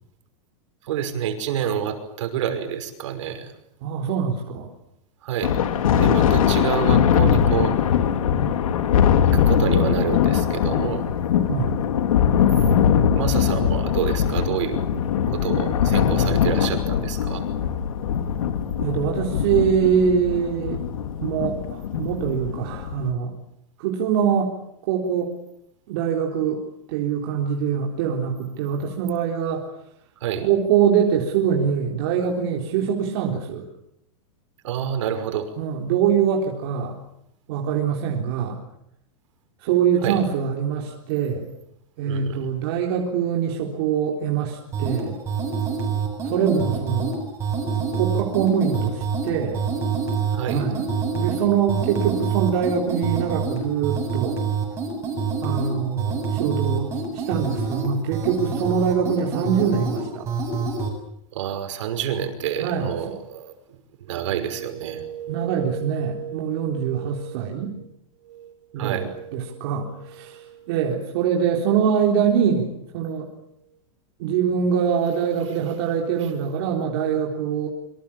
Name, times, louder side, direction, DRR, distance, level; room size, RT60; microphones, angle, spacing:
voice 1, 0.9-3.5 5.2-5.5 6.0-7.8 9.5-11.1 13.1-14.8 15.3-17.4 30.2-30.5 34.6-35.5 40.0-40.2 42.0-42.5 50.3-50.7 61.3-63.5 64.1-67.4 68.8-69.4 75.4-76.4, right 9 dB, 60° right, 8 dB, 5.7 m, -28 dB
voice 2, 3.8-4.7 11.5-11.8 18.8-20.8 21.2-23.3 23.8-24.5 24.9-25.4 25.9-29.7 30.4-33.7 35.6-37.0 37.5-38.6 39.6-41.5 42.0-45.2 46.2-47.2 47.9-49.7 50.5-50.8 51.1-54.4 55.4-60.3 62.6-62.9 65.3-67.7 68.7-69.1 69.3-73.3 74.2-77.7, right 7 dB, 45° right, -1 dB, 3.9 m, -23 dB
Thunder, 5.4-23.1, left 8 dB, 80° left, 3.1 m, -21 dB
sound 1, 44.7-60.9, right 5 dB, 15° right, 7.4 m, -27 dB
28.0 x 25.5 x 7.3 m, 0.75 s
supercardioid pair, 170°, 17 cm